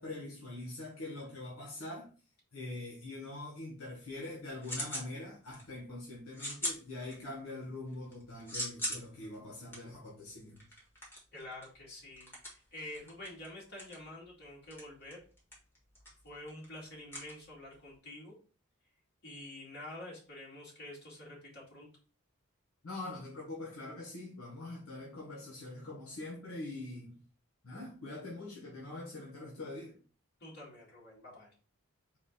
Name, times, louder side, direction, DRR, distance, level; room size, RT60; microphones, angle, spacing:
voice 1, 0.0-2.1 2.5-10.6 22.8-27.2 27.6-30.0, left 2 dB, 80° left, 1.2 m, -43 dB
sound 1, 4.1-5.1 5.5-5.9 6.3-7.5 7.9-17.9, equal, 10° left, 1.4 m, -42 dB
voice 2, 11.3-15.2 16.2-18.3 19.2-21.9 30.4-31.5, left 1 dB, 50° left, 2.2 m, -48 dB
4.1 x 2.5 x 4.1 m
head